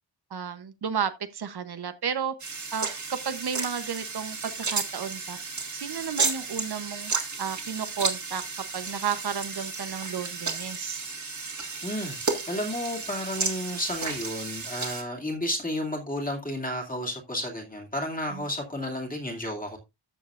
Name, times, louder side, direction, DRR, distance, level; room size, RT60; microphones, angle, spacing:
voice 1, 0.3-2.3 2.7-5.4 5.7-7.1 7.4-8.4 8.7-11.0 18.3-18.4, right 7 dB, 60° right, 0.9 m, -32 dB
sound 1, 2.4-15.0, right 4 dB, 40° right, 1.8 m, -33 dB
voice 2, 11.8-12.2 12.5-19.8, left 1 dB, 20° left, 2.4 m, -32 dB
13.0 x 7.2 x 2.4 m
wide cardioid pair, 175°, 44 cm